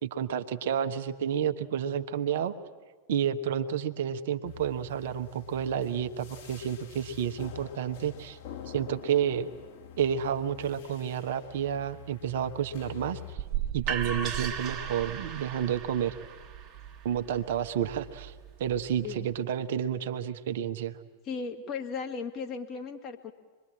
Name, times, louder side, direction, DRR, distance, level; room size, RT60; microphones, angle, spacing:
voice 1, 0.0-2.5 3.1-8.4 8.7-9.5 10.0-13.4 13.7-16.1 17.0-18.3 18.6-21.0, right 9 dB, 55° right, 8 dB, 1.1 m, -30 dB
sound 1, 4.4-13.4, left 9 dB, 50° left, 3.5 m, -47 dB
sound 2, 13.4-19.2, right 8 dB, 30° right, 1.6 m, -36 dB
voice 2, 21.2-23.3, left 5 dB, 35° left, 4 dB, 2.1 m, -36 dB
26.0 x 21.5 x 8.6 m, 1.4 s
figure-of-eight pair, 90°, 0 cm